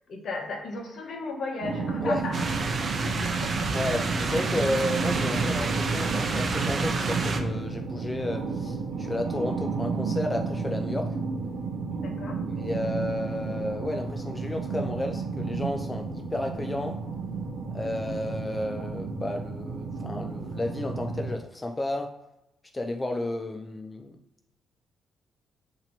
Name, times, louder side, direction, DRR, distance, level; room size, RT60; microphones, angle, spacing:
voice 1, 0.1-2.4 2.6-3.7 12.0-12.4, left 3 dB, 60° left, 2 dB, 0.9 m, -36 dB
sound 1, 1.6-21.3, right 4 dB, 85° right, 0.7 m, -32 dB
sound 2, 2.3-7.4, right 3 dB, 45° right, 0.5 m, -29 dB
voice 2, 3.7-11.1 12.5-17.0 17.7-22.1 22.7-24.2, left 1 dB, 20° left, 4 dB, 0.3 m, -32 dB
3.0 x 2.8 x 4.0 m, 0.89 s
cardioid pair, 90°, 0 cm